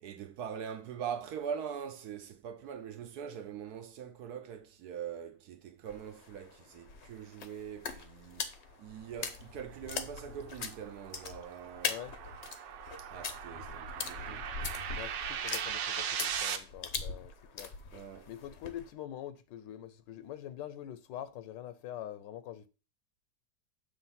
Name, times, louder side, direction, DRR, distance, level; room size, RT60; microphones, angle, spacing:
voice 1, 0.0-12.0 13.0-14.5 17.9-18.3, right 8 dB, 70° right, 1.1 m, -42 dB
sound 1, 5.9-18.9, left 5 dB, 55° left, 0.7 m, -42 dB
sound 2, 9.7-16.6, right 8 dB, 85° right, 1.4 m, -39 dB
voice 2, 14.9-17.7 18.3-22.7, left 11 dB, 80° left, 1.2 m, -44 dB
7.1 x 3.3 x 5.6 m
omnidirectional pair, 1.9 m